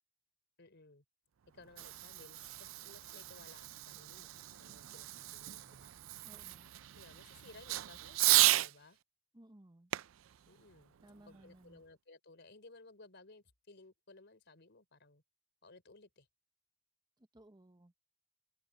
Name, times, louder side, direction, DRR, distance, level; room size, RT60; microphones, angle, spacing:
voice 1, 0.6-1.0 1.5-5.9 6.9-9.0 10.5-11.0 11.3-15.2 15.6-16.3, left 3 dB, 60° left, 4.2 m, -59 dB
Fireworks, 1.5-8.7 9.9-11.5, right 17 dB, 70° right, 0.4 m, -35 dB
voice 2, 6.2-6.7 9.3-9.9 11.0-11.8 17.2-18.2, right 1 dB, 20° right, 0.9 m, -60 dB
open air
head